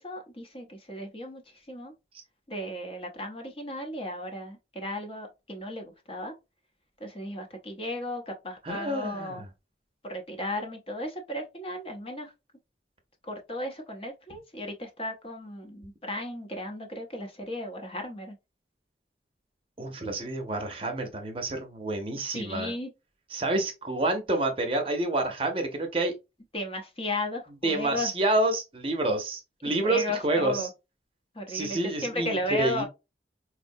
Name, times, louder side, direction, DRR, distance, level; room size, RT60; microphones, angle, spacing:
voice 1, 0.0-1.4 1.7-1.9 2.5-6.3 7.0-9.4 10.0-12.3 13.2-18.3 22.2-22.9 26.5-28.1 29.6-30.7 31.3-32.9, left 1 dB, 30° left, 0.8 m, -35 dB
voice 2, 8.6-9.5 19.8-22.7 23.3-26.1 27.6-30.7 31.5-32.9, right 2 dB, 30° right, 0.7 m, -28 dB
4.5 x 2.1 x 2.6 m
head